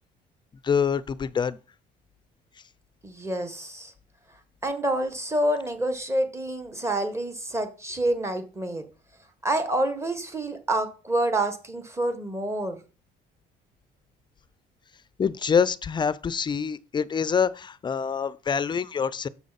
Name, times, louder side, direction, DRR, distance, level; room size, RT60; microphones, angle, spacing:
voice 1, 0.6-1.6 15.2-19.3, left 6 dB, 25° left, 0.4 m, -25 dB
voice 2, 3.0-3.9 4.6-8.8 9.4-12.8, right 1 dB, 15° right, 1.4 m, -27 dB
7.1 x 6.1 x 4.1 m
cardioid pair, 110°, 17 cm